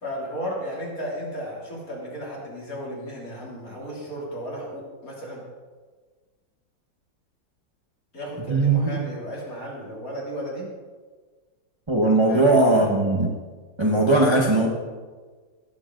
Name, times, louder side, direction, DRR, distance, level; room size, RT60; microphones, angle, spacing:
voice 1, 0.0-5.4 8.1-10.7 12.3-12.4 12.7-12.9, equal, 45° left, -4 dB, 3.5 m, -34 dB
voice 2, 11.9-13.3 13.8-14.7, right 2 dB, 20° right, -1 dB, 0.9 m, -19 dB
17.5 x 7.5 x 3.8 m, 1.4 s
omnidirectional pair, 2.1 m